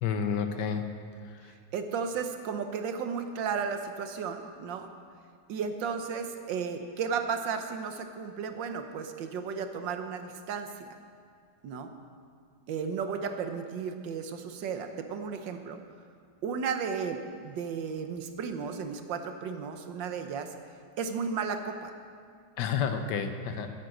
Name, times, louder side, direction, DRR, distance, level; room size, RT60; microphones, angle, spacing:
voice 1, 0.0-0.8 1.2-1.5 22.6-23.7, left 6 dB, 70° left, 7 dB, 1.4 m, -30 dB
voice 2, 1.7-4.9 5.5-10.9 11.6-11.9 12.7-15.8 16.4-20.5 21.0-21.9, right 6 dB, 80° right, 7 dB, 1.6 m, -34 dB
10.0 x 9.0 x 7.9 m, 2.2 s
omnidirectional pair, 2.0 m